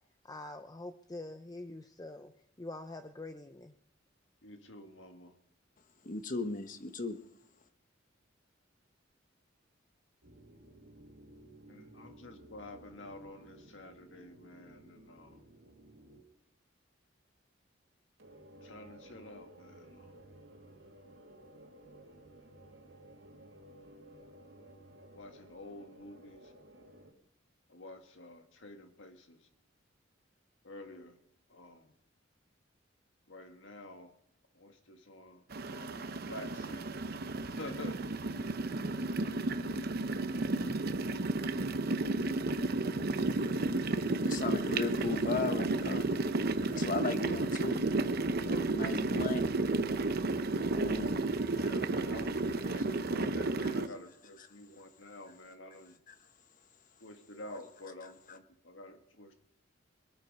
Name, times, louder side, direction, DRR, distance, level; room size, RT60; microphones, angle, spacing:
voice 1, 0.2-2.3 2.6-3.7, left 2 dB, 20° left, 7 dB, 0.5 m, -45 dB
voice 2, 4.4-5.3 11.7-15.4 18.6-20.2 25.1-26.5 27.7-29.5 30.6-31.2 31.5-31.9 33.3-34.1 34.5-36.9 37.4-38.1 43.3-43.9 51.5-56.0 57.0-59.3, left 2 dB, 75° left, 6 dB, 1.7 m, -49 dB
voice 3, 6.0-7.2 43.8-46.1 46.7-47.8 48.5-49.5 50.7-51.2 53.6-53.7 56.1-56.2, left 4 dB, 45° left, 9 dB, 1.0 m, -37 dB
sound 1, 10.2-16.2 18.2-27.1, right 1 dB, 70° right, 2.4 m, -56 dB
sound 2, 35.5-53.9, right 2 dB, 55° right, 0.8 m, -32 dB
sound 3, 36.6-52.6, left 1 dB, 10° right, 1.6 m, -55 dB
22.0 x 9.0 x 5.3 m, 0.71 s
head